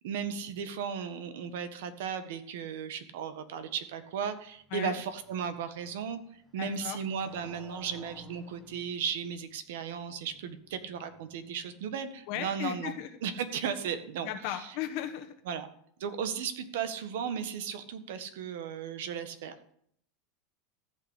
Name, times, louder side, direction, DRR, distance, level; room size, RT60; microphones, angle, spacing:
voice 1, 0.0-12.9 13.2-14.7 15.5-15.7 16.0-19.7, right 7 dB, 80° right, 10 dB, 1.5 m, -36 dB
Motorcycle, 4.0-12.1, left 2 dB, ahead, 1.5 m, -57 dB
voice 2, 6.6-7.0 12.3-13.1 14.2-15.3, left 12 dB, 55° left, 5 dB, 1.1 m, -36 dB
14.5 x 5.8 x 8.4 m, 0.67 s
supercardioid pair, 155°, 0 cm